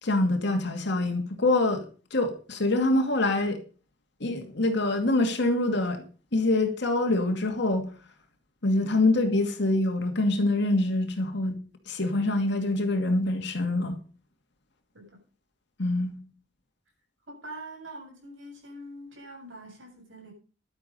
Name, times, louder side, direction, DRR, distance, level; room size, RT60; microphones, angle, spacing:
voice 1, 0.0-3.6 4.2-6.0 6.3-7.9 8.6-11.6 11.9-14.0 15.8-16.2, left 2 dB, 65° left, 2.4 m, -25 dB
voice 2, 17.3-20.3, right 1 dB, 90° right, 7.6 m, -44 dB
11.5 x 9.9 x 5.4 m
head